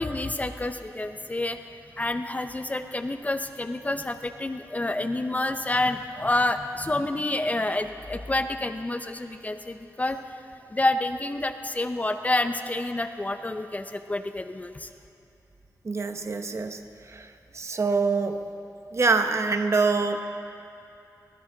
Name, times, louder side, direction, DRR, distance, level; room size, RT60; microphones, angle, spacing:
voice 1, 0.0-1.6 2.0-10.2 10.7-14.9, left 2 dB, 20° left, 8 dB, 0.6 m, -28 dB
voice 2, 15.8-16.8 17.1-17.3 17.5-18.4 18.9-20.2, right 4 dB, 45° right, 7 dB, 0.9 m, -25 dB
20.0 x 18.0 x 3.9 m, 2.6 s
wide cardioid pair, 100°, 7 cm